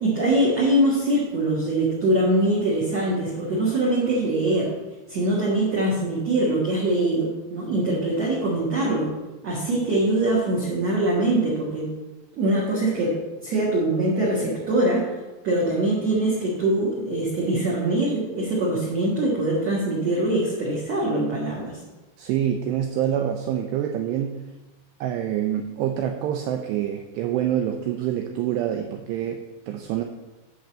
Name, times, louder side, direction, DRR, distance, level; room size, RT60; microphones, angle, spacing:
voice 1, 0.0-4.7 5.1-9.1 9.4-11.9 12.3-13.2 13.4-15.1 15.4-21.8, right 1 dB, 60° right, -5 dB, 1.8 m, -23 dB
voice 2, 22.2-24.4 25.0-30.0, right 10 dB, 90° right, 5 dB, 2.4 m, -26 dB
11.0 x 3.9 x 7.4 m, 1.1 s
omnidirectional pair, 5.6 m